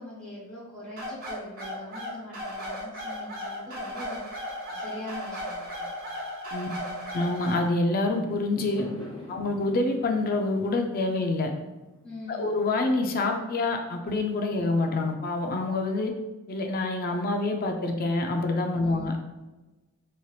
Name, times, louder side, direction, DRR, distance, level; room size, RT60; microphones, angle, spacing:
voice 1, 0.0-4.4 4.7-5.9 12.0-12.4 18.8-19.1, left 1 dB, 5° left, -12 dB, 0.8 m, -42 dB
sound 1, 1.0-7.7, equal, 45° right, 0.7 m, -36 dB
voice 2, 7.1-8.9 9.3-11.5 12.3-16.1 16.5-19.2, left 2 dB, 45° left, 4 dB, 0.4 m, -26 dB
Fireworks, 8.1-12.5, left 1 dB, 25° left, 1.0 m, -44 dB
3.1 x 2.8 x 2.3 m, 1.1 s
head